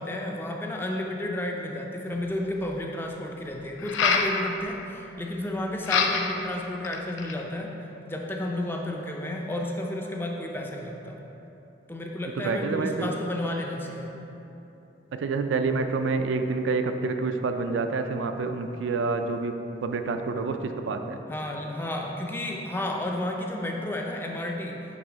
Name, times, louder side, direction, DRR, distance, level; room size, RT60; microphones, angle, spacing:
voice 1, 0.0-7.8 8.1-11.2 11.9-14.1 20.5-20.7 21.3-24.8, left 1 dB, 10° left, 1 dB, 0.4 m, -32 dB
sound 1, 2.1-2.2 3.8-4.3 5.8-6.4 6.8-7.4, left 5 dB, 90° left, 0.4 m, -25 dB
voice 2, 12.4-13.1 15.2-19.5 19.8-20.6 20.9-21.2, right 4 dB, 85° right, 7 dB, 0.3 m, -27 dB
6.1 x 3.1 x 5.0 m, 3.0 s
head